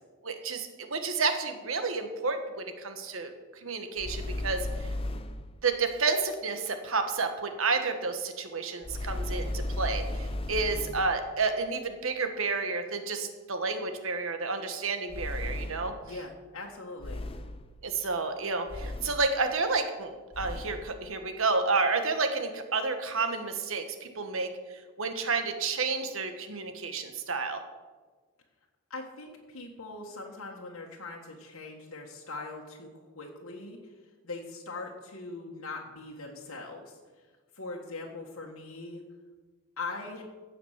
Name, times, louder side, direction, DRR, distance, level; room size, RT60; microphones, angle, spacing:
voice 1, 0.2-3.3 3.6-4.9 5.6-15.9 17.8-20.1 20.4-24.5 25.0-27.6, right 4 dB, 70° right, 7 dB, 1.4 m, -30 dB
sound 1, 4.0-5.5 8.8-11.1 15.1-16.0 17.0-17.7 18.7-19.3 20.3-20.9, left 1 dB, 25° left, 0.6 m, -35 dB
voice 2, 16.0-17.2 28.9-32.9 33.1-33.8 34.2-37.0 37.5-39.0 39.8-40.2, left 3 dB, 80° left, -2 dB, 1.5 m, -41 dB
15.5 x 5.9 x 7.4 m, 1.4 s
head